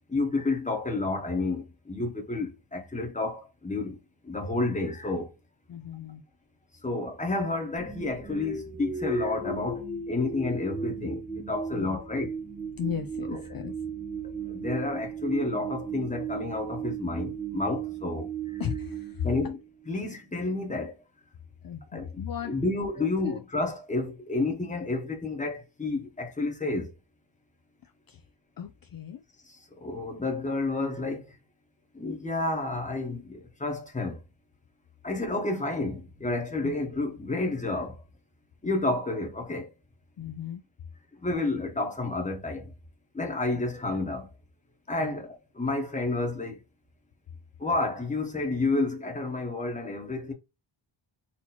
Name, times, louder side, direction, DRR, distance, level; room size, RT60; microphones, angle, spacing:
voice 1, 0.1-4.0 4.2-5.3 6.8-12.4 13.3-13.4 14.2-18.6 19.2-19.6 19.9-21.0 21.9-22.1 22.5-26.9 29.8-31.3 31.9-34.2 35.0-38.0 38.6-39.7 41.2-42.7 43.1-44.3 44.9-46.6 47.6-50.3, left 2 dB, 15° left, 1.2 m, -30 dB
voice 2, 5.7-6.2 11.7-12.0 12.8-13.7 18.6-19.5 21.6-22.7 23.0-23.4 27.8-28.3 28.6-29.2 36.6-36.8 40.2-40.6 45.0-45.1, left 8 dB, 50° left, 0.5 m, -36 dB
sound 1, 7.8-19.9, right 5 dB, 5° right, 1.1 m, -36 dB
4.4 x 2.9 x 4.1 m
wide cardioid pair, 180°, 47 cm